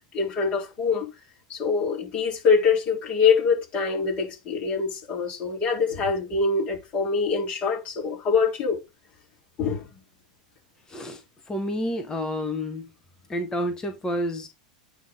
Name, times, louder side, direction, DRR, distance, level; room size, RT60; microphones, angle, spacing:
voice 1, 0.1-1.1 1.5-8.8 9.6-9.9, left 5 dB, 35° left, 3.9 m, -24 dB
voice 2, 10.9-11.2 11.5-12.9 13.3-14.5, equal, 20° left, 1.3 m, -29 dB
9.1 x 3.8 x 3.9 m
hypercardioid pair, 90°, 4 cm